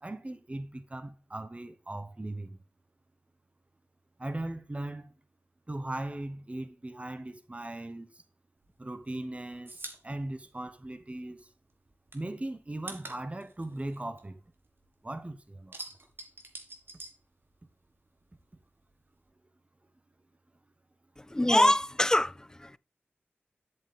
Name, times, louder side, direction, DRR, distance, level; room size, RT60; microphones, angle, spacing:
voice 1, 0.0-2.6 4.2-5.1 5.7-8.1 8.8-11.5 12.1-14.4 15.0-15.8, right 1 dB, 30° right, 1.0 m, -38 dB
sound 1, 8.6-11.4 11.7-15.0 15.3-17.9 18.2-19.3, right 2 dB, 55° right, 1.7 m, -47 dB
voice 2, 21.2-22.8, left 1 dB, 15° left, 0.3 m, -25 dB
8.4 x 7.2 x 3.5 m
cardioid pair, 45°, 4 cm